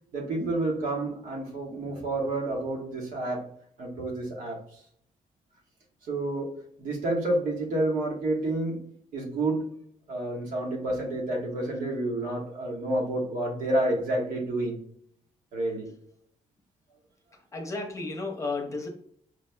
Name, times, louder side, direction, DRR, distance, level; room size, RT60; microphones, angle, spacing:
voice 1, 0.1-3.4 3.8-4.8 6.1-8.8 9.1-9.7 10.1-14.8 15.5-15.9, right 2 dB, 90° right, -1 dB, 1.3 m, -29 dB
voice 2, 17.3-18.9, left 3 dB, 20° left, 2 dB, 0.7 m, -34 dB
4.8 x 2.7 x 2.2 m, 0.64 s
cardioid pair, 165°, 13 cm